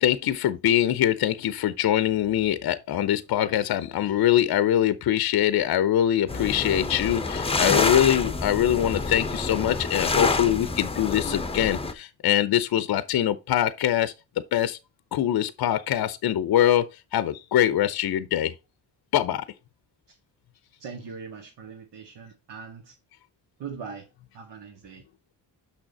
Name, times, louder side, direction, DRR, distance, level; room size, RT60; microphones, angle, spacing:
voice 1, 0.0-14.1 14.5-14.8 15.1-16.8 17.1-18.5 19.1-19.5, left 11 dB, 55° left, 0.7 m, -23 dB
sound 1, 6.3-11.9, left 3 dB, 15° left, 0.8 m, -27 dB
voice 2, 20.8-23.0 23.6-24.1 24.3-25.1, right 5 dB, 65° right, 1.9 m, -41 dB
6.3 x 5.8 x 4.2 m
cardioid pair, 105°, 44 cm